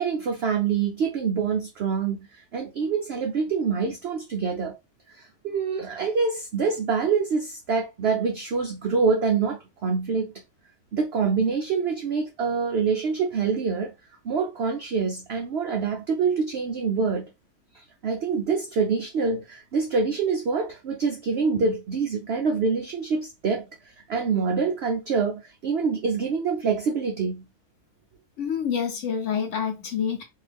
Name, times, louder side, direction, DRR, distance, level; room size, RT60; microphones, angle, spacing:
voice 1, 0.0-4.8 5.1-10.3 10.9-13.9 14.2-17.3 17.7-27.4, right 5 dB, 75° right, 0.5 m, -26 dB
voice 2, 28.4-30.2, left 7 dB, 60° left, 0.9 m, -27 dB
2.7 x 2.4 x 3.3 m
omnidirectional pair, 1.7 m